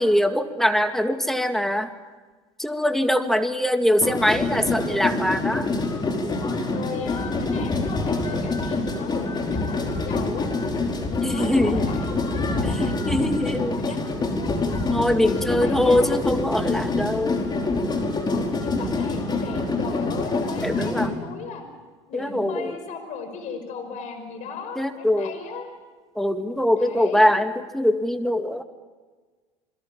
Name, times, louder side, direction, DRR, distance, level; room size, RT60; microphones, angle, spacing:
voice 1, 0.0-1.9 2.6-5.7 11.2-11.8 12.8-13.8 14.9-17.4 20.6-21.1 22.1-22.8 24.8-25.4 26.2-28.6, left 1 dB, ahead, 7 dB, 2.3 m, -22 dB
sound 1, 4.0-21.1, left 3 dB, 30° left, 4.9 m, -26 dB
voice 2, 6.7-10.5 11.3-12.7 13.8-14.0 15.4-16.2 18.2-21.6 22.1-25.7 26.7-27.3, left 5 dB, 55° left, 6 dB, 5.5 m, -37 dB
28.0 x 22.0 x 7.4 m, 1.4 s
hypercardioid pair, 75°, 15 cm